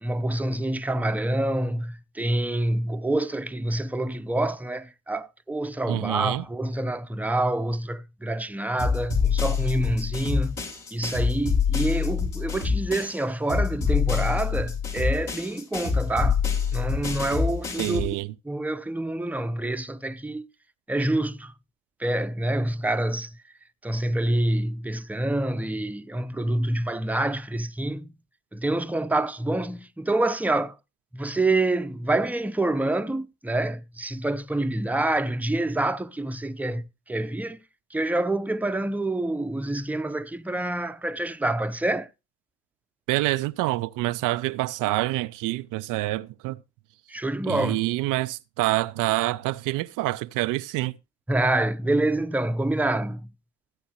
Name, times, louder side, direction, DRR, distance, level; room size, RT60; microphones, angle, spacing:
voice 1, 0.0-10.6 10.9-16.4 16.7-18.1 18.4-20.5 20.9-21.5 22.0-23.4 23.8-28.1 28.5-30.7 31.1-37.6 37.9-42.1 47.1-47.8 51.3-53.3, right 1 dB, 5° right, 0.7 m, -27 dB
voice 2, 5.9-6.4 17.8-18.3 43.1-46.6 47.5-50.9, right 18 dB, 70° right, 0.5 m, -27 dB
sound 1, 8.8-13.2 13.5-18.1, left 6 dB, 70° left, 3.7 m, -26 dB
14.5 x 8.5 x 2.9 m
hypercardioid pair, 40°, 33 cm